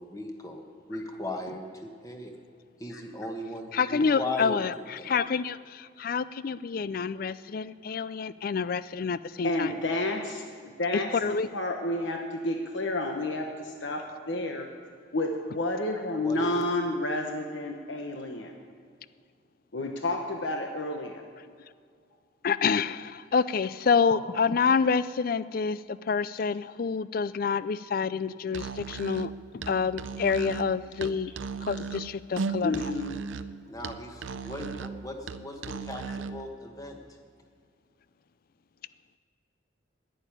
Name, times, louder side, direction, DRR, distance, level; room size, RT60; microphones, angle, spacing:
voice 1, 0.0-2.3 2.8-4.6 5.0-5.1 16.1-16.6 33.7-37.0, left 1 dB, 20° left, 3 dB, 1.4 m, -38 dB
voice 2, 3.7-9.7 11.1-11.5 22.4-31.3 31.7-32.8, left 5 dB, 50° left, 16 dB, 0.4 m, -28 dB
voice 3, 9.4-14.7 15.1-18.5 19.7-21.2 24.1-24.2 24.5-24.6 32.6-33.2, left 2 dB, 70° left, 3 dB, 1.1 m, -30 dB
Musical instrument, 28.5-36.4, right 5 dB, 80° right, 0.5 m, -37 dB
11.0 x 9.0 x 9.9 m, 2.1 s
head